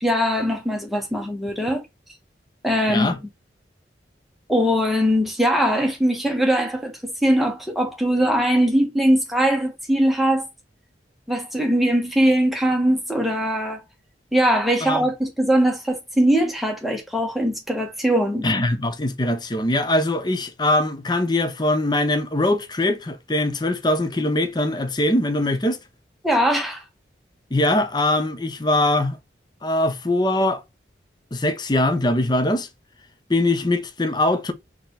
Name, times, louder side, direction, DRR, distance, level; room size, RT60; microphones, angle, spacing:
voice 1, 0.0-1.8 2.6-3.2 4.5-6.9 7.2-10.5 11.3-13.8 14.3-18.5 26.2-26.8, equal, ahead, 1.3 m, -21 dB
voice 2, 18.4-25.8 27.5-29.2 29.6-30.6 31.3-32.7 33.3-34.5, left 1 dB, 25° left, 0.7 m, -22 dB
4.4 x 3.0 x 3.9 m
head